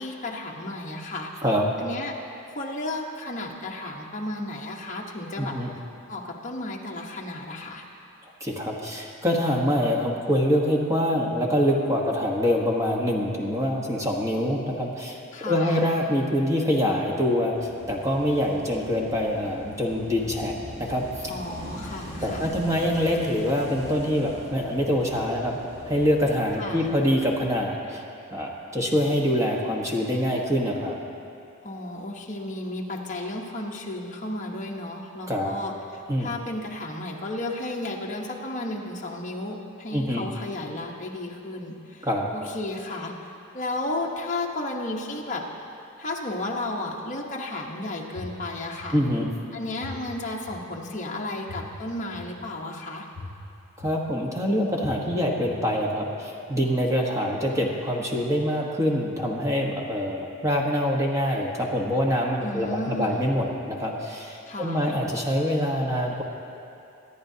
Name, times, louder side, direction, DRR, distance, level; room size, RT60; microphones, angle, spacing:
voice 1, 0.0-1.3 1.8-2.1 2.5-5.6 6.1-7.8 15.3-15.8 21.3-22.5 26.6-26.9 31.6-43.1 43.5-45.5 46.0-49.0 49.5-53.1 62.4-63.3 64.5-64.9, left 2 dB, 35° left, -1 dB, 1.0 m, -33 dB
voice 2, 5.4-5.7 8.4-21.3 22.2-28.0 28.3-31.0 35.3-35.5 36.1-36.3 39.9-40.2 42.0-42.3 48.9-49.3 53.8-66.2, equal, 15° right, -2 dB, 1.2 m, -25 dB
Wind / Waves surf, 17.5-27.5, equal, 75° right, 3.2 m, -42 dB
sound 1, 48.1-48.2 48.8-48.9 49.8-49.9 50.5-50.6 51.5-51.6 52.1-52.2 53.1-53.2 53.8-53.9 54.8-54.9 55.5-55.6, left 6 dB, 30° right, 1.7 m, -42 dB
23.5 x 10.0 x 2.8 m, 2.6 s
head